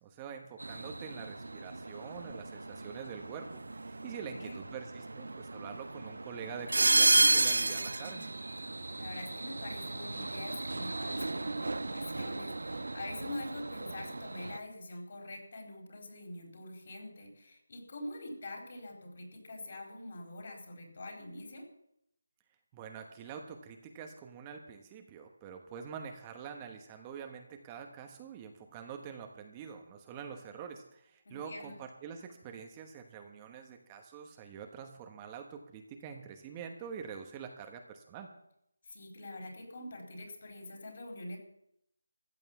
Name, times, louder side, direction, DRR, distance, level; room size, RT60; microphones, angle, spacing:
voice 1, 0.0-8.3 22.7-38.3, right 7 dB, 20° right, 4 dB, 1.2 m, -46 dB
sound 1, 0.6-14.6, right 2 dB, 75° right, 0.9 m, -33 dB
voice 2, 4.0-4.6 9.0-21.6 31.2-31.8 38.9-41.4, left 2 dB, 50° left, 2 dB, 4.6 m, -45 dB
14.5 x 9.2 x 7.2 m, 0.76 s
figure-of-eight pair, 165°, 0 cm